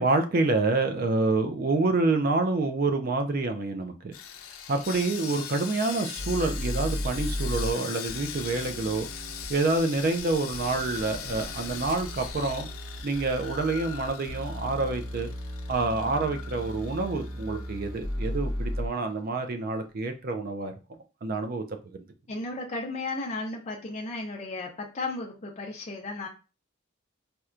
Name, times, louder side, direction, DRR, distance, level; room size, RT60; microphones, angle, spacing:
voice 1, 0.0-4.1 4.7-9.1 9.5-12.7 13.0-15.3 15.7-20.7 21.2-21.6 21.9-22.0, right 3 dB, 45° right, 0.4 m, -27 dB
Sawing, 4.1-18.4 18.6-18.8 19.3-19.4, left 8 dB, 85° left, 0.5 m, -40 dB
sound 1, 6.2-7.7 8.1-9.4 10.5-18.9, equal, 15° right, 0.8 m, -35 dB
voice 2, 22.3-26.3, left 2 dB, 30° left, 0.5 m, -34 dB
4.2 x 2.2 x 2.4 m
head